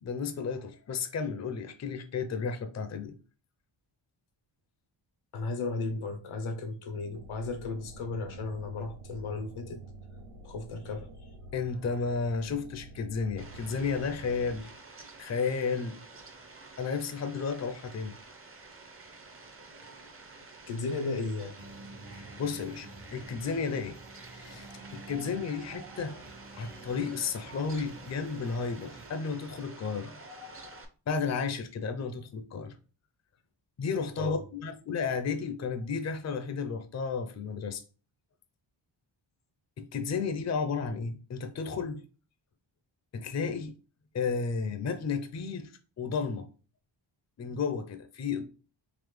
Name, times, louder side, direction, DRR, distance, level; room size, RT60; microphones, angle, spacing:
voice 1, 0.0-3.2 11.5-14.7 15.2-16.0 16.8-18.2 22.1-24.0 24.3-26.2 26.5-30.8 31.1-32.7 33.8-37.8 39.8-42.0 43.1-43.7 44.1-45.7 46.0-46.5 47.4-48.4, left 5 dB, 35° left, 0.6 m, -33 dB
voice 2, 5.3-9.8 10.4-11.3 19.6-19.7 20.7-21.5 34.2-34.4, left 3 dB, 90° left, 0.9 m, -35 dB
warpdrive-long, 7.1-14.6, right 2 dB, 80° right, 0.7 m, -48 dB
Fowl, 13.4-30.9, right 3 dB, 30° right, 0.7 m, -50 dB
sound 1, 21.6-29.1, right 2 dB, 60° right, 1.2 m, -49 dB
4.0 x 2.8 x 3.1 m
cardioid pair, 80°, 48 cm